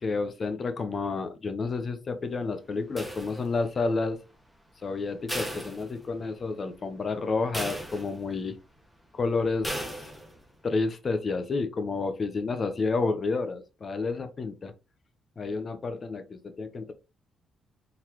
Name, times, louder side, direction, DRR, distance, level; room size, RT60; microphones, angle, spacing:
voice 1, 0.0-4.2 4.8-8.6 9.1-10.1 10.6-14.7 15.4-16.9, left 4 dB, 40° left, 0.9 m, -30 dB
sound 1, 3.0-3.8 5.3-6.4 6.8-6.9 7.5-8.4 9.6-10.4, equal, ahead, 1.5 m, -36 dB
4.1 x 4.0 x 3.1 m
cardioid pair, 90°, 0 cm